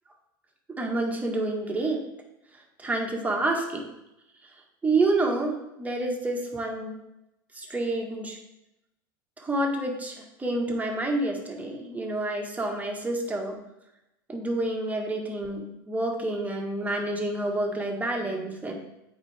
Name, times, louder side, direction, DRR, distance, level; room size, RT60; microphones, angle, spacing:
voice 1, 0.8-2.0 2.8-3.9 4.8-7.0 7.5-8.4 9.4-13.6 14.3-18.7, right 2 dB, 15° right, 1 dB, 1.5 m, -28 dB
8.1 x 4.6 x 3.5 m, 0.91 s
hypercardioid pair, 90°, 12 cm